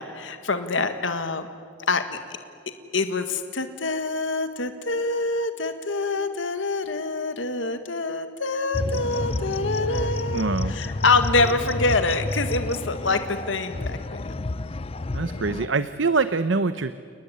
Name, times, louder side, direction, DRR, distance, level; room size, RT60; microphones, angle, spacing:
voice 1, 0.0-1.4 1.8-2.0 2.9-14.2 15.3-15.6, left 3 dB, 75° left, 8 dB, 1.7 m, -25 dB
sound 1, 8.7-15.7, left 2 dB, 30° left, 0.6 m, -30 dB
voice 2, 10.3-10.7 15.1-16.9, right 4 dB, 70° right, 13 dB, 0.8 m, -24 dB
30.0 x 19.5 x 10.0 m, 2.3 s
head